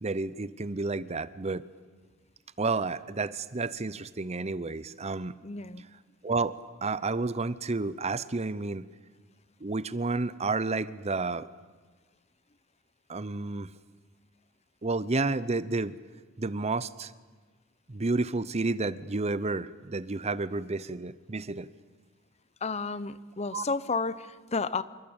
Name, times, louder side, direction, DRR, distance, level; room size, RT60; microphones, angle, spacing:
voice 1, 0.0-1.6 2.6-5.4 6.2-6.5 6.8-8.8 9.6-11.5 13.1-13.7 14.8-16.0 16.4-17.1 17.9-21.7 23.5-23.7, right 3 dB, 30° right, 16 dB, 0.8 m, -30 dB
voice 2, 5.4-5.8 22.6-24.8, left 4 dB, 30° left, 16 dB, 0.8 m, -32 dB
27.5 x 23.5 x 8.9 m, 1.4 s
head